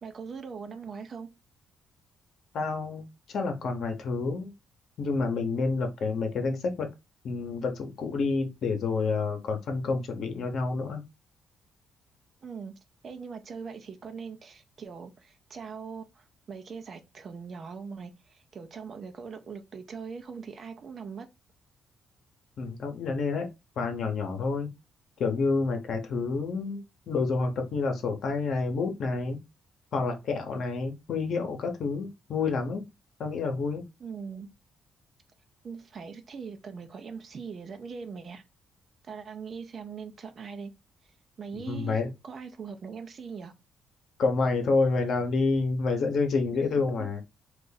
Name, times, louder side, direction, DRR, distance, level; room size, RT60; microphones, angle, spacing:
voice 1, 0.0-1.3 12.4-12.7 13.0-21.3 34.0-34.5 35.6-38.4 39.0-40.7 41.4-43.5 46.9-47.1, right 5 dB, 50° right, 0.6 m, -41 dB
voice 2, 2.5-3.0 3.3-4.5 5.0-6.9 7.2-11.0 22.6-23.5 23.8-24.7 25.2-26.8 27.1-29.4 29.9-32.8 33.2-33.8 41.7-42.1 44.2-47.2, left 4 dB, 65° left, 0.9 m, -28 dB
2.6 x 2.5 x 3.9 m
cardioid pair, 90°, 0 cm